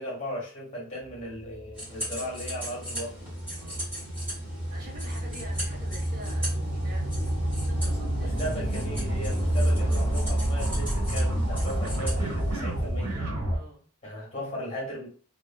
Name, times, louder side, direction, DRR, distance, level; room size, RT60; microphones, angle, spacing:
voice 1, 0.0-3.2 8.2-13.2 14.0-15.1, equal, 30° left, -2 dB, 1.2 m, -37 dB
sound 1, 1.1-13.6, right 1 dB, 85° right, 0.9 m, -29 dB
sound 2, 1.7-13.0, equal, 10° right, 1.5 m, -40 dB
voice 2, 3.5-3.9 4.7-7.1 7.5-8.9 13.5-13.9, right 1 dB, 40° right, -2 dB, 0.8 m, -47 dB
2.7 x 2.4 x 2.2 m, 0.42 s
head